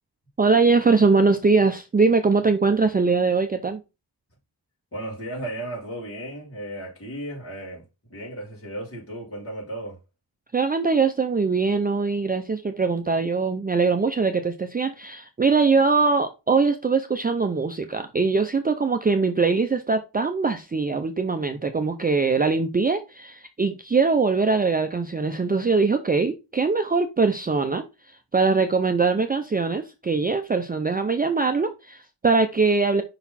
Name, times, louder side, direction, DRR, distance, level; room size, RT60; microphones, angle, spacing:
voice 1, 0.4-3.8 10.5-33.0, right 4 dB, 20° right, 0.5 m, -22 dB
voice 2, 4.9-7.8 8.1-10.0, right 1 dB, 30° left, 4.2 m, -35 dB
5.7 x 4.0 x 4.2 m
wide cardioid pair, 110°, 43 cm